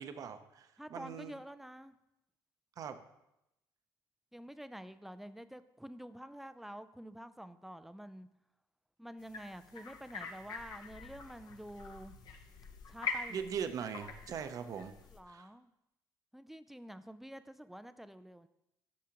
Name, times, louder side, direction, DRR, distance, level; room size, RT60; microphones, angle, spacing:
voice 1, 0.0-1.3 2.8-3.0 13.3-14.9 15.3-15.5, right 7 dB, 45° right, 9 dB, 0.7 m, -40 dB
voice 2, 0.8-2.0 4.3-8.3 9.0-12.1 12.9-13.5 14.4-14.8 15.1-15.7 16.3-18.5, equal, 5° right, 12 dB, 0.3 m, -49 dB
sound 1, 9.3-15.2, left 5 dB, 55° left, 0.9 m, -44 dB
10.0 x 6.2 x 2.9 m, 0.87 s
cardioid pair, 125°, 8 cm